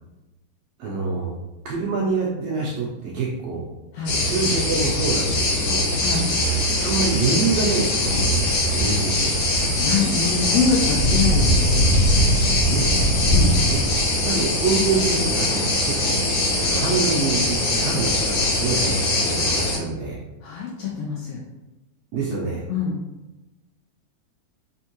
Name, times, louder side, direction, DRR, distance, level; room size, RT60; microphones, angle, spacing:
voice 1, 0.8-1.4 1.6-3.7 4.2-5.9 6.8-9.4 12.7-12.9 13.7-13.8 14.2-16.2 16.6-20.2 22.1-22.7, right 4 dB, 80° right, -4 dB, 1.4 m, -26 dB
sound 1, 4.1-19.8, left 1 dB, 65° left, 1.7 m, -21 dB
voice 2, 9.6-11.8 13.3-13.5 20.4-21.4 22.7-23.0, left 5 dB, 80° left, -3 dB, 1.5 m, -25 dB
4.4 x 3.5 x 2.9 m, 1.1 s
omnidirectional pair, 3.5 m